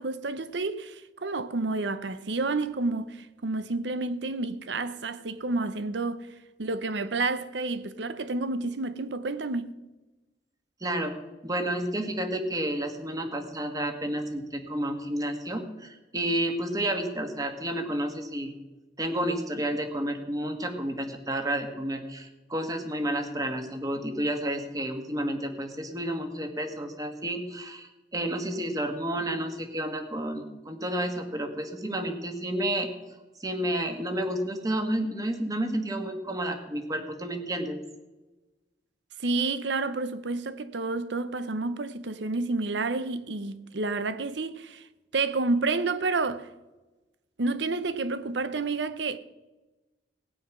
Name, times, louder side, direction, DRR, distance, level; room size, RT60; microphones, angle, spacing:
voice 1, 0.0-6.3 6.6-9.7 39.2-44.9 45.1-46.5 47.4-49.2, right 3 dB, 75° right, 0.8 m, -30 dB
voice 2, 10.8-11.1 11.4-18.5 19.0-32.9 33.4-37.8, right 1 dB, 20° right, 1.5 m, -31 dB
16.0 x 9.6 x 6.1 m
head